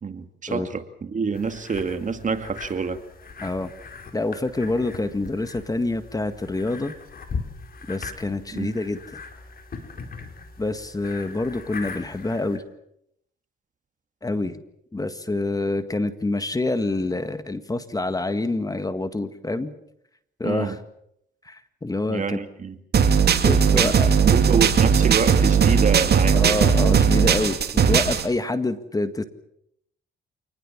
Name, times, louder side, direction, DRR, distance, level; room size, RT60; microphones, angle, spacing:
voice 1, 0.0-3.0 8.5-8.7 20.4-20.8 22.1-22.7 23.7-24.0 24.2-26.6, right 5 dB, 40° right, 9 dB, 2.3 m, -27 dB
sound 1, 1.3-12.6, left 4 dB, 50° left, 4.4 m, -39 dB
voice 2, 4.1-6.9 7.9-9.0 10.6-12.6 14.2-14.6 14.9-19.7 20.4-20.8 21.4-22.4 23.4-24.1 26.3-29.2, left 2 dB, 20° left, 10 dB, 1.8 m, -26 dB
sound 2, 22.9-28.2, right 7 dB, 55° right, 2.7 m, -18 dB
27.5 x 20.0 x 7.4 m, 0.76 s
cardioid pair, 90°, 20 cm